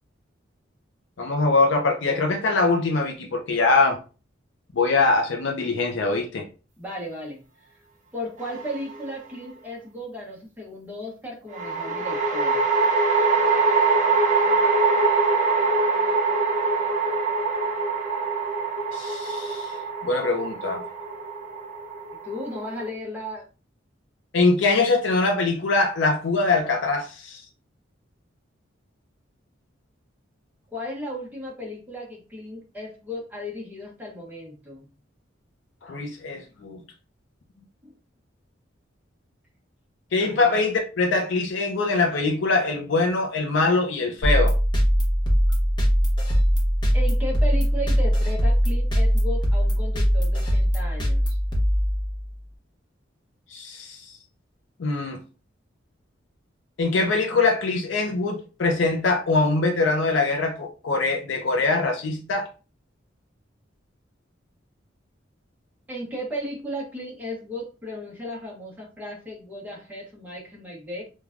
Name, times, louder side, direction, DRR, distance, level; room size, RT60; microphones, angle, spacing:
voice 1, 1.2-4.0 4.7-6.5 18.9-19.8 20.0-20.8 24.3-27.4 35.8-36.8 40.1-44.6 53.5-54.2 54.8-55.2 56.8-62.5, left 3 dB, 70° left, 0.4 m, -23 dB
voice 2, 6.8-7.4 8.1-12.6 22.2-23.4 30.7-34.9 40.2-40.6 46.9-51.4 65.9-71.0, equal, 10° right, 0.7 m, -35 dB
sound 1, 8.4-9.1 11.5-22.9, right 4 dB, 40° right, 0.8 m, -23 dB
sound 2, 44.2-52.4, equal, 25° left, 0.8 m, -21 dB
3.1 x 2.2 x 2.4 m
head